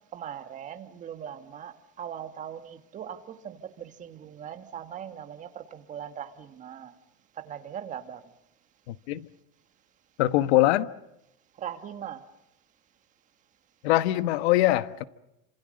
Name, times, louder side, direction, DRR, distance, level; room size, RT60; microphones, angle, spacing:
voice 1, 0.1-6.9 7.3-8.3 11.6-12.2, right 9 dB, 25° right, 1.6 m, -40 dB
voice 2, 8.9-9.3 10.2-10.9 13.8-15.0, left 15 dB, 85° left, 1.3 m, -23 dB
28.5 x 26.5 x 6.5 m
cardioid pair, 175°, 31 cm